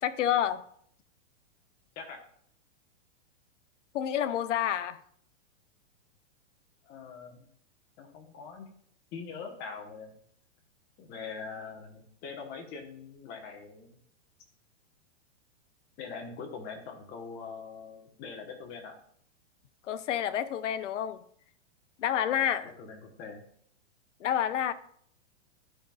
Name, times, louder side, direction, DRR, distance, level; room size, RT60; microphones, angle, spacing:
voice 1, 0.0-0.6 3.9-5.0 19.9-21.2 22.0-22.7 24.2-24.7, left 10 dB, 75° left, 0.8 m, -29 dB
voice 2, 6.8-7.5 8.0-8.7 9.1-10.2 11.0-14.0 16.0-19.0 22.5-23.4, left 5 dB, 25° left, 1.3 m, -43 dB
12.5 x 5.3 x 2.4 m
hypercardioid pair, 155°, 37 cm